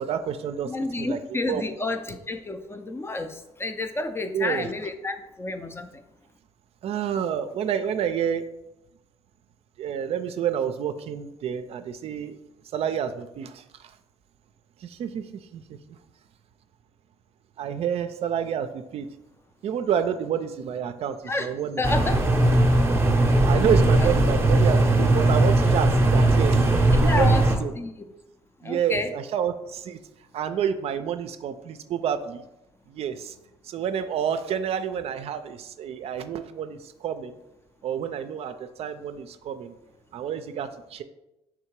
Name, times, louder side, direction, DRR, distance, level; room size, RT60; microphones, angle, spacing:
voice 1, 0.0-0.7 1.0-1.2 1.5-1.6 4.3-4.7 6.8-8.5 9.8-12.4 12.7-13.9 14.8-15.8 17.6-19.1 19.6-21.8 23.5-26.6 27.0-27.7 28.6-30.0 30.3-32.4 32.9-33.4 33.6-37.4 37.8-39.8 40.1-41.0, right 8 dB, 60° right, 10 dB, 0.4 m, -29 dB
voice 2, 0.7-6.0 21.3-22.3 24.0-24.1 26.9-28.1 28.6-29.1, left 2 dB, 20° left, 8 dB, 0.4 m, -30 dB
sound 1, 21.8-27.6, right 2 dB, 20° right, 0.6 m, -19 dB
3.6 x 2.8 x 4.5 m, 0.91 s
cardioid pair, 80°, 12 cm